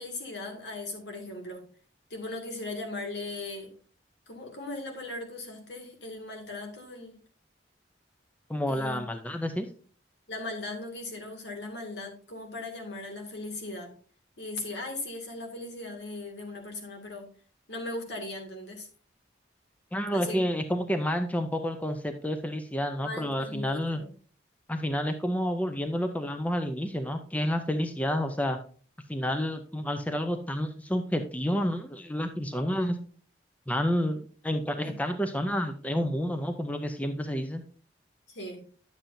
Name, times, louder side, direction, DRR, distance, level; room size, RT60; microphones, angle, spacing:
voice 1, 0.0-1.6 2.1-3.7 4.3-7.2 8.7-9.0 10.3-13.9 14.4-17.3 17.7-18.9 20.1-20.4 23.0-24.1 32.5-32.9 34.8-34.9 38.3-38.6, left 2 dB, 70° left, 2 dB, 2.1 m, -38 dB
voice 2, 8.5-9.7 19.9-24.0 24.7-28.6 29.1-33.0 33.7-37.6, equal, 10° left, 7 dB, 0.5 m, -29 dB
10.0 x 7.4 x 2.6 m, 0.41 s
head